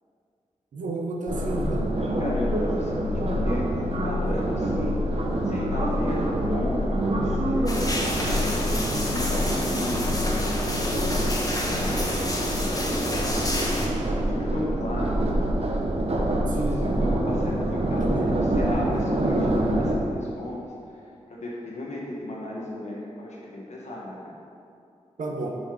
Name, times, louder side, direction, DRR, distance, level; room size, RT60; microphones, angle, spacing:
voice 1, 0.7-1.9 16.5-16.9 18.0-18.3 25.2-25.5, right 2 dB, 80° right, 0 dB, 0.8 m, -31 dB
sound 1, 1.3-19.9, right 1 dB, 55° right, 0.8 m, -26 dB
voice 2, 2.0-5.0 5.5-7.7 8.2-10.9 11.5-12.9 14.1-15.2 16.5-21.0 21.3-24.4, left 1 dB, 65° left, -4 dB, 1.1 m, -35 dB
sound 2, 7.7-13.9, left 1 dB, 30° left, 1.1 m, -29 dB
5.3 x 4.7 x 4.7 m, 2.5 s
cardioid pair, 45°, 13 cm